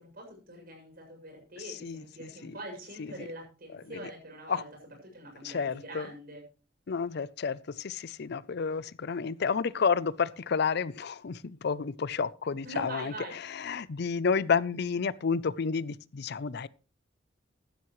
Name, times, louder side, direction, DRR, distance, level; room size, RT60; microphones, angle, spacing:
voice 1, 0.0-6.4 12.6-13.4, right 1 dB, 50° right, 7.2 m, -44 dB
voice 2, 1.8-2.5 4.5-4.6 5.4-6.1 6.9-13.1 13.5-16.7, left 5 dB, 55° left, 0.5 m, -30 dB
15.0 x 12.5 x 3.2 m
head